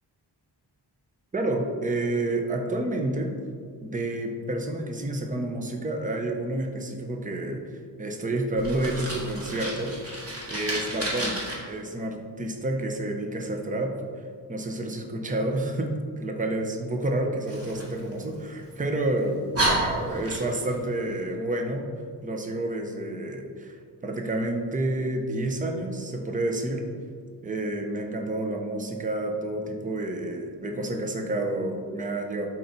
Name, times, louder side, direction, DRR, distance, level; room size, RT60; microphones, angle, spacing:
voice 1, 1.3-3.4 3.8-9.9 10.5-14.0 14.5-21.9 22.2-26.9 27.4-32.5, right 1 dB, 20° right, 3 dB, 0.8 m, -29 dB
Fire, 8.6-11.5 17.5-18.7 19.2-19.3 19.5-20.7, right 1 dB, 35° right, 2.1 m, -30 dB
12.0 x 4.4 x 4.0 m, 2.1 s
wide cardioid pair, 140°, 41 cm